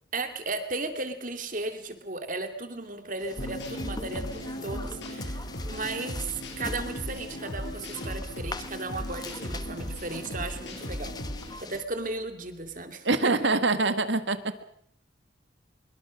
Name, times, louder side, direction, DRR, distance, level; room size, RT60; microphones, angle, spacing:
voice 1, 0.1-11.1 11.6-13.3, right 3 dB, 45° right, 7 dB, 2.5 m, -35 dB
sound 1, 3.2-11.8, left 3 dB, 20° left, 1.2 m, -43 dB
sound 2, 3.4-11.5, equal, 70° left, 7.8 m, -37 dB
sound 3, 3.4-12.8, equal, 45° left, 1.6 m, -49 dB
voice 2, 13.0-14.6, right 3 dB, 70° right, 10 dB, 1.7 m, -25 dB
24.5 x 23.0 x 6.3 m, 0.67 s
head